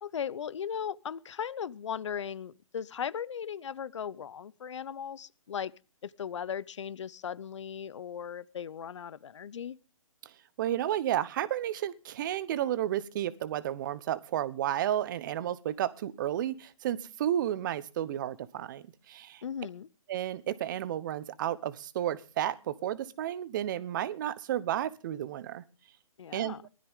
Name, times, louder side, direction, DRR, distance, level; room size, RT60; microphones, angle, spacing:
voice 1, 0.0-5.7 6.0-9.8 19.4-19.9 26.2-26.6, left 8 dB, 55° left, 20 dB, 0.9 m, -37 dB
voice 2, 10.6-19.4 20.1-25.6 26.3-26.5, right 11 dB, 35° right, 18 dB, 1.1 m, -32 dB
19.5 x 13.0 x 3.7 m, 0.34 s
hypercardioid pair, 150°, 18 cm